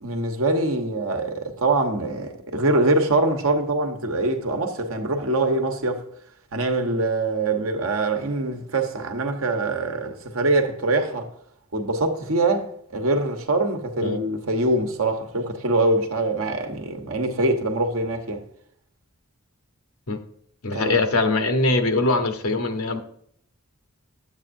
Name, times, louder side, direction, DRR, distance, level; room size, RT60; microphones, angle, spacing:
voice 1, 0.0-6.1 6.5-11.3 11.7-18.4 20.7-21.0, right 2 dB, 70° right, 1.1 m, -24 dB
voice 2, 20.6-23.0, left 2 dB, 80° left, 1.0 m, -22 dB
10.0 x 7.9 x 2.6 m
head